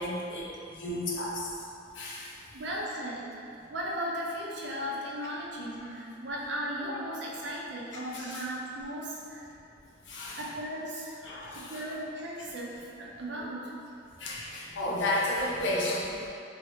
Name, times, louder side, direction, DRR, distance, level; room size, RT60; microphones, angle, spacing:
voice 1, 0.0-1.5 1.9-2.3 5.8-5.9 8.1-8.4 10.1-10.4 11.2-11.8 12.4-12.5 14.2-16.3, left 1 dB, 70° left, -5 dB, 0.6 m, -33 dB
voice 2, 2.5-9.5 10.4-11.3 11.5-13.7, equal, 65° right, -4 dB, 0.5 m, -36 dB
2.9 x 2.4 x 2.9 m, 2.7 s
head